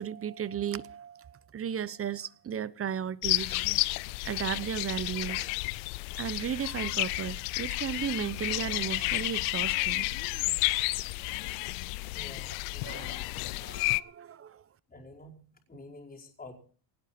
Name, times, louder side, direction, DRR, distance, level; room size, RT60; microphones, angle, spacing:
voice 1, 0.0-3.6 4.2-5.5 6.2-10.1 12.8-13.1 13.6-14.6, right 8 dB, 30° right, 0.8 m, -35 dB
sound 1, 3.2-14.0, left 23 dB, 85° left, 0.7 m, -31 dB
voice 2, 12.1-13.4 14.9-16.5, left 2 dB, 20° left, 5.0 m, -49 dB
18.5 x 16.5 x 4.3 m
supercardioid pair, 100°, 49 cm